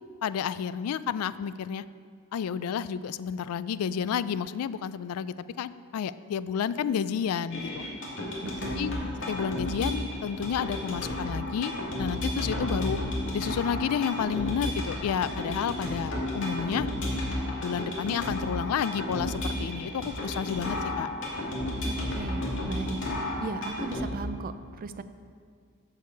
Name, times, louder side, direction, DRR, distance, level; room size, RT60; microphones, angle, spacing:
voice 1, 0.2-1.8 2.3-7.9 8.8-9.0 9.3-11.7 12.0-13.0 13.3-16.9 17.6-21.1, left 7 dB, 90° left, 16 dB, 0.3 m, -31 dB
sound 1, 7.5-24.0, left 1 dB, 60° left, 2.2 m, -32 dB
voice 2, 8.4-9.1 21.8-23.0 23.4-25.0, right 4 dB, 40° right, 12 dB, 0.4 m, -37 dB
14.0 x 4.8 x 4.5 m, 2.1 s
head